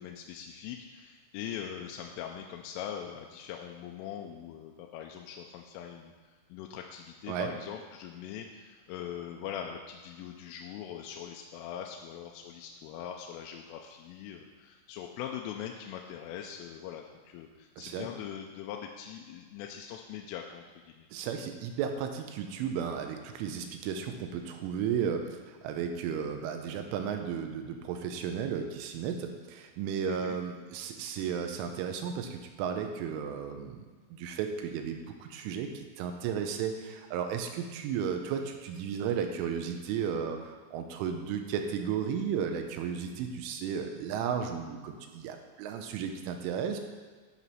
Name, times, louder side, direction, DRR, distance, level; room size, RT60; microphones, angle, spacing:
voice 1, 0.0-6.2 6.5-21.1 30.0-30.4, left 9 dB, 85° left, 2 dB, 3.1 m, -42 dB
voice 2, 17.8-18.1 21.1-33.9 34.2-46.8, right 7 dB, 85° right, 5 dB, 3.2 m, -34 dB
11.0 x 5.2 x 5.6 m, 1.5 s
omnidirectional pair, 5.8 m